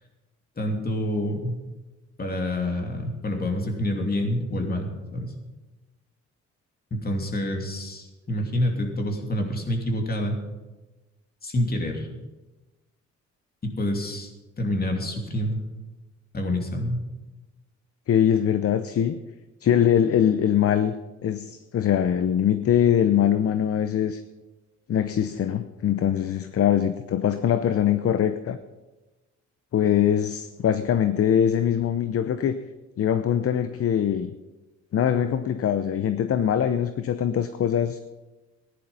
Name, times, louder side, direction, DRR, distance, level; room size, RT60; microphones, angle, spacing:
voice 1, 0.6-1.6 2.2-5.3 6.9-10.4 11.4-12.1 13.6-14.3 14.6-15.6 16.3-17.0, left 1 dB, 30° left, 3 dB, 2.8 m, -27 dB
voice 2, 18.1-19.2 19.6-21.0 21.2-24.2 24.9-28.6 29.7-32.6 33.0-34.3 34.9-38.0, left 9 dB, 50° left, 11 dB, 0.7 m, -22 dB
14.5 x 10.5 x 5.6 m, 1.2 s
cardioid pair, 90°, 30 cm